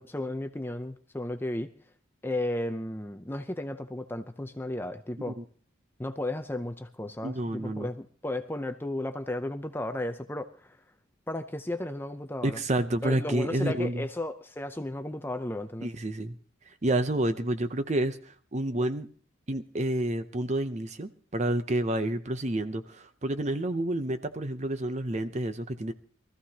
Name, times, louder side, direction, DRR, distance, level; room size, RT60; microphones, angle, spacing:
voice 1, 0.0-1.7 2.2-5.4 6.0-10.8 11.3-12.6 13.0-15.9, left 1 dB, 10° left, 0.5 m, -34 dB
voice 2, 7.2-7.9 12.4-14.1 15.8-16.4 16.8-19.1 19.5-25.9, right 1 dB, 35° right, 0.7 m, -29 dB
23.0 x 14.5 x 2.9 m
head